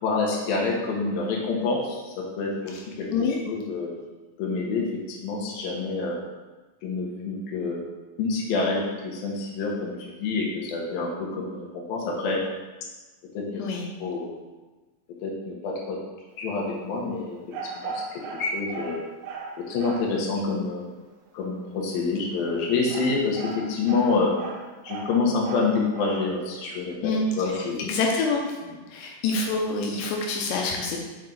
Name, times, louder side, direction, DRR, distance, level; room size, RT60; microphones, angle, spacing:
voice 1, 0.0-3.9 4.4-6.2 6.8-7.8 8.2-12.4 13.3-13.6 14.0-14.3 15.2-16.0 16.4-17.4 17.6-19.0 19.7-20.9 21.3-24.3 24.8-27.8, left 4 dB, 65° left, -3 dB, 2.6 m, -27 dB
sound 1, 17.5-20.2 22.3-26.4, right 4 dB, 80° right, 2.8 m, -38 dB
voice 2, 27.8-28.5 28.9-31.0, left 4 dB, 85° left, 0 dB, 3.0 m, -26 dB
6.1 x 5.5 x 3.9 m, 1.2 s
omnidirectional pair, 5.0 m